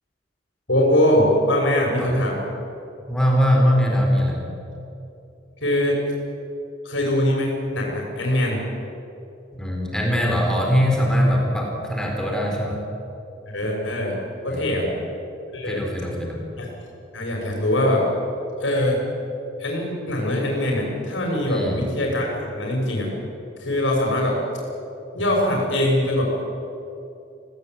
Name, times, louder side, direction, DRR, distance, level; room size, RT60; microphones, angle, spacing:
voice 1, 0.7-2.4 5.6-6.0 6.8-8.6 13.5-14.2 14.4-14.9 15.5-15.8 16.6-16.7 17.1-18.0 18.6-19.0 19.6-22.3 22.5-23.1 23.6-24.3 25.1-26.3, left 1 dB, 75° left, -2 dB, 6.7 m, -22 dB
voice 2, 3.1-4.4 9.6-12.8 14.5-14.9 15.6-16.4 21.5-21.8, equal, 5° left, -1 dB, 4.3 m, -21 dB
26.5 x 17.5 x 9.4 m, 2.8 s
head